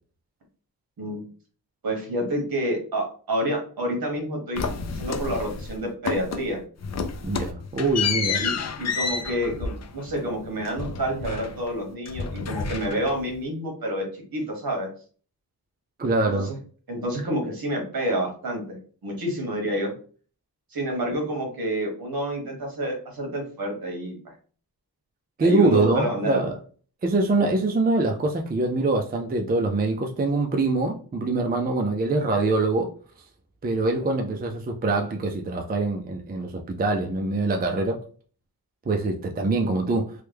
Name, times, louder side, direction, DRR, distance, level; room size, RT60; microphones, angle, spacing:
voice 1, 1.8-6.6 8.4-14.9 16.3-16.6 16.9-19.9 20.7-24.2 25.4-26.4, equal, 60° right, 1.3 m, -28 dB
sound 1, 4.5-5.8 6.0-6.5 6.8-11.8 12.0-13.3, left 5 dB, 45° left, 0.4 m, -30 dB
voice 2, 7.2-8.4 16.0-16.5 25.4-26.6 27.0-32.9 33.6-38.0 38.9-40.1, right 2 dB, 25° right, 0.4 m, -24 dB
3.1 x 2.2 x 3.3 m
wide cardioid pair, 105°, 39 cm